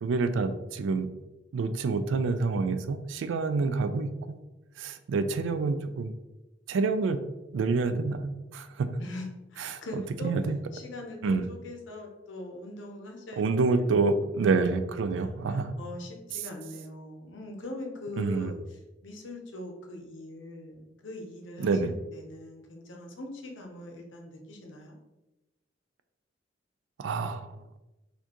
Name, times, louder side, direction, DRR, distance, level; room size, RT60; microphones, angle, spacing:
voice 1, 0.0-1.1 1.5-4.1 4.8-6.1 6.7-7.2 7.5-8.9 9.6-10.6 11.2-11.4 13.4-15.7 18.2-18.5 21.6-21.9 27.0-27.6, right 4 dB, 75° right, 10 dB, 0.3 m, -27 dB
voice 2, 9.0-10.3 10.7-13.9 14.5-14.6 15.2-25.0, left 1 dB, 80° left, 2 dB, 0.8 m, -42 dB
4.2 x 2.7 x 2.9 m, 1.0 s
head